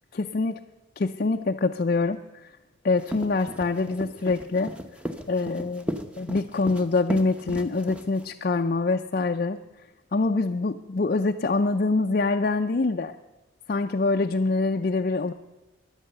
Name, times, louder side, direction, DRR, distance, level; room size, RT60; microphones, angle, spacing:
voice 1, 0.1-0.5 1.0-2.5 2.8-4.7 5.3-5.9 6.2-9.6 10.1-13.1 13.7-15.3, left 3 dB, 45° left, 3 dB, 0.5 m, -25 dB
sound 1, 2.9-8.3, equal, 5° right, 0.8 m, -35 dB
16.5 x 11.0 x 6.7 m, 1.1 s
head